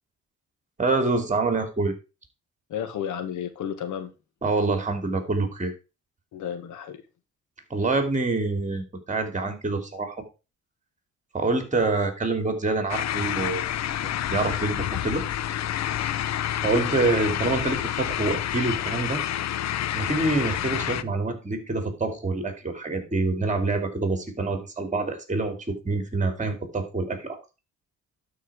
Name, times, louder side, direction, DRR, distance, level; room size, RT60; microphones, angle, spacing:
voice 1, 0.8-1.9 4.4-5.7 7.7-10.2 11.3-13.6 14.0-15.2 16.6-19.2 19.9-27.4, right 3 dB, 25° right, 7 dB, 2.8 m, -26 dB
voice 2, 2.7-4.1 6.3-7.0, left 9 dB, 80° left, 9 dB, 1.7 m, -32 dB
sound 1, 12.9-21.0, left 11 dB, 60° left, 0.7 m, -28 dB
12.0 x 4.8 x 4.8 m, 0.30 s
cardioid pair, 90°, 30 cm